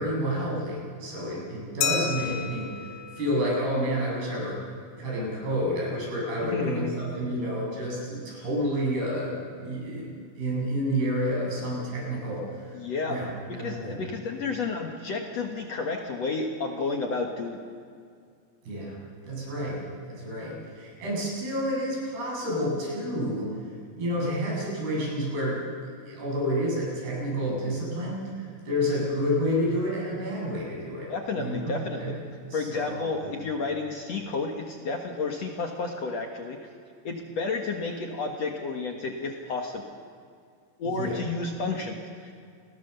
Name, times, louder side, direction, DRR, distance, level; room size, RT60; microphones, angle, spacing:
voice 1, 0.0-4.6 5.0-12.8 13.1-13.3 13.5-14.0 18.7-19.0 19.2-19.8 20.1-23.5 24.0-25.6 26.0-31.7 32.0-32.1 32.5-33.2 40.9-41.2, equal, 75° right, -4 dB, 10.0 m, -29 dB
Glass, 1.8-4.3, left 7 dB, 85° left, 3.6 m, -33 dB
voice 2, 6.5-6.9 12.7-17.6 31.1-32.1 32.5-36.6 37.0-39.8 40.8-42.3, left 4 dB, 55° left, 2 dB, 2.2 m, -31 dB
29.0 x 20.0 x 7.0 m, 2.2 s
omnidirectional pair, 4.5 m